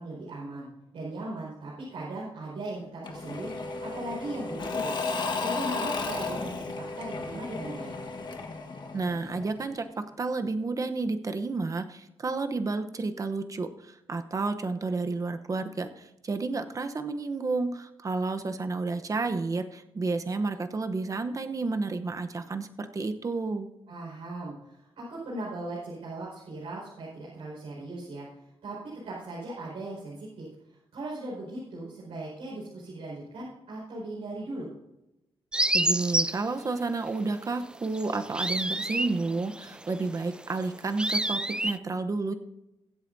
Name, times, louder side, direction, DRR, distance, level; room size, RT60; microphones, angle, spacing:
voice 1, 0.0-7.9 23.9-28.3 28.6-28.8 29.0-34.7, right 2 dB, 90° right, -7 dB, 5.2 m, -38 dB
Engine / Mechanisms / Drill, 3.0-9.7, left 3 dB, 50° left, 1.5 m, -34 dB
voice 2, 8.9-9.8 10.2-23.7 35.7-42.3, right 3 dB, 35° right, 8 dB, 0.9 m, -31 dB
sound 1, 35.5-36.4 37.7-41.8, right 1 dB, 10° right, 0.4 m, -29 dB
23.0 x 8.1 x 2.7 m, 0.91 s
cardioid pair, 105°, 10 cm